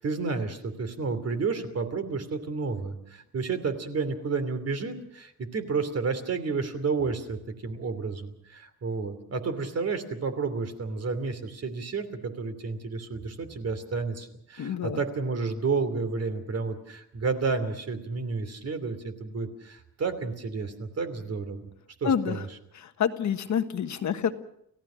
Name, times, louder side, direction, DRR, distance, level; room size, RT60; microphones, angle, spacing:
voice 1, 0.0-21.7 22.0-22.5, right 4 dB, 45° right, 9 dB, 2.9 m, -31 dB
voice 2, 14.6-15.0 22.0-22.4 22.7-24.3, left 8 dB, 55° left, 8 dB, 1.4 m, -28 dB
29.5 x 16.0 x 6.3 m, 0.73 s
cardioid pair, 145°, 35 cm